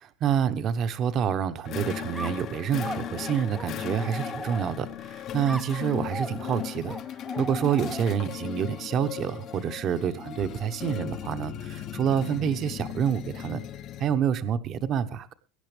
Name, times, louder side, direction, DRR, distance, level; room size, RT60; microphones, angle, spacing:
voice 1, 0.0-7.0 7.4-13.6 14.0-15.3, right 8 dB, 30° right, 10 dB, 1.1 m, -28 dB
sound 1, 1.7-14.2, left 10 dB, 30° left, 0.9 m, -37 dB
sound 2, 2.1-5.0 5.5-8.3, right 1 dB, 5° right, 0.7 m, -39 dB
22.0 x 10.0 x 3.4 m, 0.32 s
supercardioid pair, 165°, 0 cm